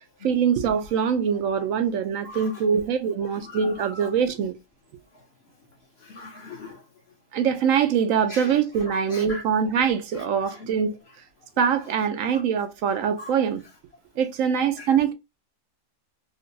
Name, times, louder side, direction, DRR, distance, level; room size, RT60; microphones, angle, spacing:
voice 1, 0.2-4.5 7.3-10.9 11.6-13.6 14.2-15.1, right 7 dB, 75° right, 1.0 m, -23 dB
voice 2, 3.5-4.1 6.0-6.8 8.3-8.6 9.1-9.4 10.2-10.3 12.3-12.4 13.2-13.3 14.8-14.9, left 2 dB, 55° left, 1.0 m, -40 dB
3.8 x 2.2 x 2.6 m
omnidirectional pair, 1.4 m